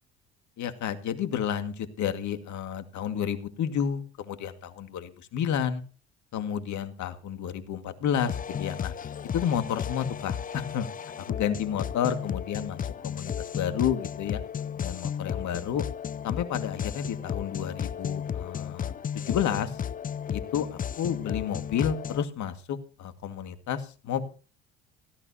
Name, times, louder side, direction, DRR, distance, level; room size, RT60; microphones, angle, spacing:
voice 1, 0.6-5.8 6.3-8.9 9.3-14.4 14.8-15.8 16.2-19.8 20.3-20.7 21.0-24.3, left 8 dB, 55° left, 9 dB, 2.1 m, -31 dB
sound 1, 8.1-22.3, left 8 dB, 25° left, 0.5 m, -34 dB
17.0 x 14.0 x 2.9 m, 0.37 s
hypercardioid pair, 65°, 34 cm